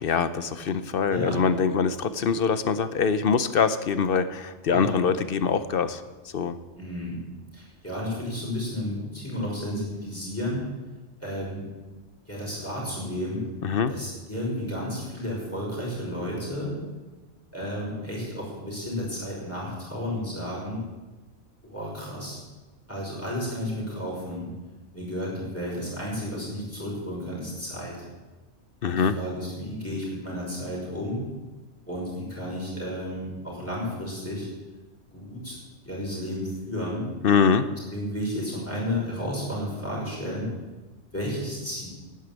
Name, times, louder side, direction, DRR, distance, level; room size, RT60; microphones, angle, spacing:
voice 1, 0.0-6.6 13.6-13.9 28.8-29.2 37.2-37.6, left 6 dB, 55° left, 12 dB, 0.9 m, -24 dB
voice 2, 1.1-1.4 4.7-5.0 6.7-7.2 7.5-10.6 11.2-11.6 12.3-13.5 13.9-16.8 17.5-20.8 21.6-22.4 22.9-24.5 24.9-28.1 28.9-31.3 31.9-34.5 35.1-35.6 35.8-37.1 37.6-40.5 41.1-41.9, equal, 10° left, -5 dB, 5.7 m, -32 dB
11.5 x 9.6 x 8.9 m, 1.2 s
omnidirectional pair, 1.2 m